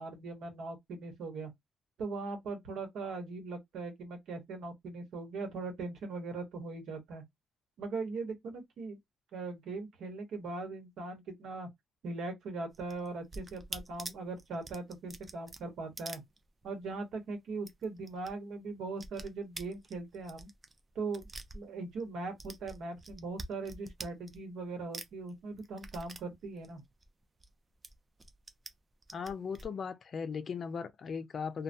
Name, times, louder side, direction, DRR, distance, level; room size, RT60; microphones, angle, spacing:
voice 1, 0.0-1.5 2.0-7.2 7.8-9.0 9.3-11.7 12.0-16.2 16.6-20.5 20.9-21.3 21.5-26.8, right 3 dB, 75° right, 1.1 m, -40 dB
sound 1, 12.7-16.9 17.2-17.3 17.6-18.3 18.6-22.1 22.4-24.7 24.9-27.5 27.8-28.7 29.0-29.7, right 2 dB, 30° right, 0.5 m, -46 dB
voice 2, 29.1-31.6, left 6 dB, 50° left, 0.4 m, -38 dB
2.2 x 2.1 x 2.6 m
cardioid pair, 90°, 0 cm